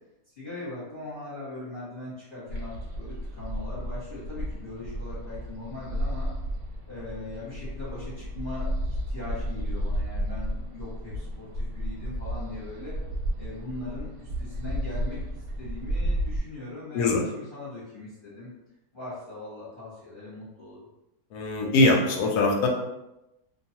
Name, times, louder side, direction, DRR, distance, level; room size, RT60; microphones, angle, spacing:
voice 1, 0.3-6.3 6.9-13.0 13.4-18.5 18.9-20.8, left 2 dB, 40° left, -10 dB, 1.0 m, -40 dB
sound 1, 2.5-16.4, equal, 90° right, 1.2 m, -32 dB
voice 2, 21.3-22.7, left 2 dB, 75° left, 1 dB, 1.1 m, -22 dB
2.6 x 2.3 x 2.7 m, 0.92 s
omnidirectional pair, 1.8 m